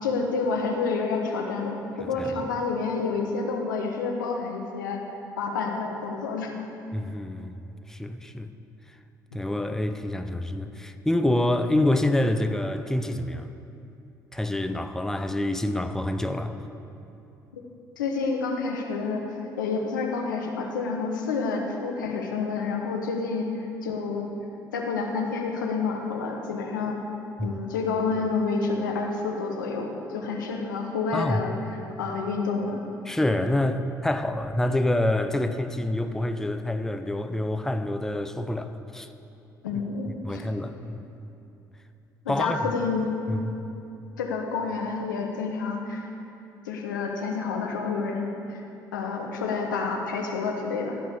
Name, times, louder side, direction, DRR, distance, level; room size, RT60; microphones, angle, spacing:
voice 1, 0.0-5.0 5.4-6.5 9.3-9.4 18.0-19.2 19.6-24.3 24.7-27.0 27.4-31.5 32.0-32.8 39.6-40.4 42.2-43.1 44.2-46.1 46.6-48.6 48.9-51.0, left 4 dB, 80° left, 1 dB, 1.0 m, -29 dB
voice 2, 6.9-7.6 7.9-8.5 9.3-13.5 14.3-16.6 27.4-27.6 31.1-31.4 33.1-39.1 40.2-41.0 42.3-42.7 43.3-43.5, left 1 dB, 5° left, 8 dB, 0.7 m, -27 dB
15.5 x 5.6 x 6.8 m, 2.8 s
figure-of-eight pair, 50°, 10 cm